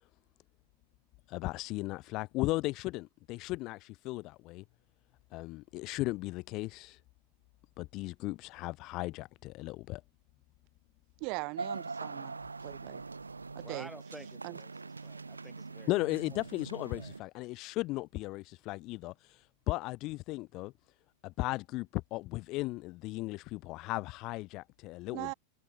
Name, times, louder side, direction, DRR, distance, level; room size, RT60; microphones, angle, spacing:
voice 1, 1.3-4.6 5.3-7.0 7.8-10.0 15.9-20.7 21.2-25.3, left 20 dB, 40° left, 0.7 m, -36 dB
voice 2, 11.2-12.3 12.6-13.0 13.6-13.9 14.4-14.5 25.1-25.3, right 34 dB, 45° right, 0.6 m, -39 dB
sound 1, 11.6-17.2, right 4 dB, 80° right, 1.9 m, -43 dB
voice 3, 13.6-15.9 16.3-16.4 16.9-17.1, right 1 dB, 5° right, 4.7 m, -51 dB
figure-of-eight pair, 90°, 0 cm